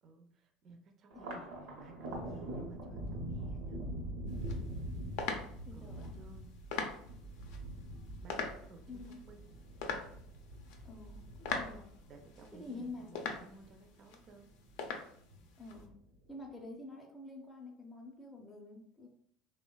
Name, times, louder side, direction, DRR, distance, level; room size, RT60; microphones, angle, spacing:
voice 1, 0.0-3.8 5.7-6.5 8.2-9.5 12.1-14.5, right 3 dB, 45° right, 4 dB, 0.4 m, -56 dB
Thunder, 1.1-13.8 14.2-15.0 15.3-16.2, right 1 dB, 80° right, 0.7 m, -44 dB
sound 1, 4.3-15.9, left 5 dB, 75° left, 0.5 m, -44 dB
voice 2, 5.6-6.1 8.9-9.2 10.8-11.9 12.5-13.1 15.6-15.9 16.3-19.1, left 2 dB, 10° left, -1 dB, 0.5 m, -48 dB
3.2 x 2.0 x 2.2 m, 0.65 s
supercardioid pair, 105°, 0 cm